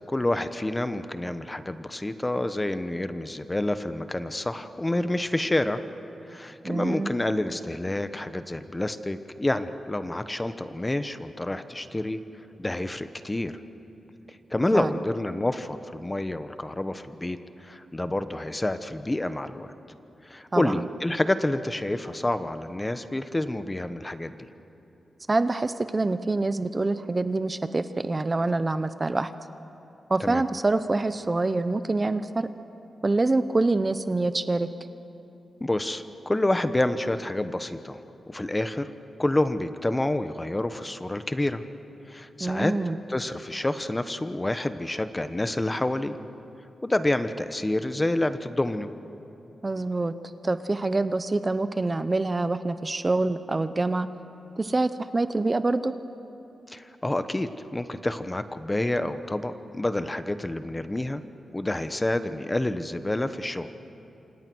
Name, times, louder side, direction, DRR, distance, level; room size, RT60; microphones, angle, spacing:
voice 1, 0.1-5.8 6.3-12.2 12.6-13.5 14.5-19.7 20.2-24.5 30.2-30.4 35.6-38.0 38.3-38.9 39.2-41.6 42.1-42.7 43.1-46.2 46.8-48.9 56.7-61.2 61.5-63.7, left 1 dB, 15° left, 10 dB, 1.0 m, -28 dB
voice 2, 6.6-7.1 14.7-15.0 20.5-20.8 25.3-29.3 30.1-32.5 33.0-34.7 42.4-43.0 49.6-50.1 50.4-54.1 54.6-55.9, right 2 dB, 30° right, 11 dB, 0.7 m, -26 dB
28.0 x 27.0 x 6.3 m, 2.9 s
wide cardioid pair, 105°, 0 cm